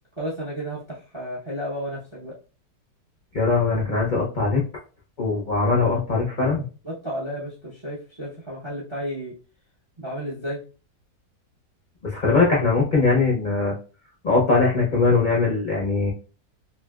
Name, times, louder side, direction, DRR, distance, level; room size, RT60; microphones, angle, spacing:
voice 1, 0.2-2.3 6.8-9.3 10.0-10.6, equal, 45° right, -4 dB, 0.3 m, -32 dB
voice 2, 3.3-4.6 5.2-6.6 12.0-13.7 14.2-16.1, left 3 dB, 70° left, -3 dB, 0.4 m, -21 dB
3.1 x 2.7 x 2.2 m, 0.35 s
omnidirectional pair, 1.9 m